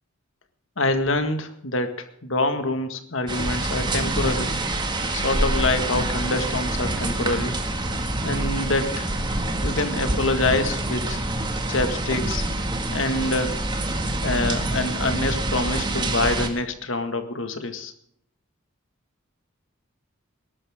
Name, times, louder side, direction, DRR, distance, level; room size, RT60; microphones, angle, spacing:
voice 1, 0.8-4.5 5.1-7.6 8.2-9.2 9.6-11.2 11.7-12.4 12.9-13.6 14.2-17.9, left 2 dB, 65° left, 8 dB, 1.8 m, -26 dB
sound 1, 3.3-16.5, right 2 dB, 20° right, 1.9 m, -26 dB
21.0 x 12.5 x 3.7 m, 0.66 s
head